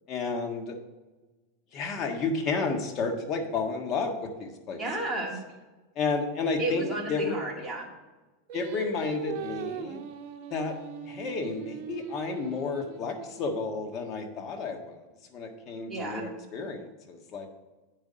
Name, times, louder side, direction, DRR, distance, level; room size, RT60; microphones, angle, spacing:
voice 1, 0.1-0.8 1.7-4.8 5.9-7.4 8.5-10.0 10.5-10.8 11.1-15.0 15.3-17.5, left 4 dB, 40° left, 3 dB, 1.5 m, -31 dB
voice 2, 4.8-5.4 6.6-7.9 15.9-16.3, right 1 dB, 5° right, -4 dB, 2.2 m, -32 dB
Singing, 8.5-13.8, right 8 dB, 55° right, 1.0 m, -41 dB
8.5 x 5.6 x 5.1 m, 1.2 s
supercardioid pair, 135°, 0 cm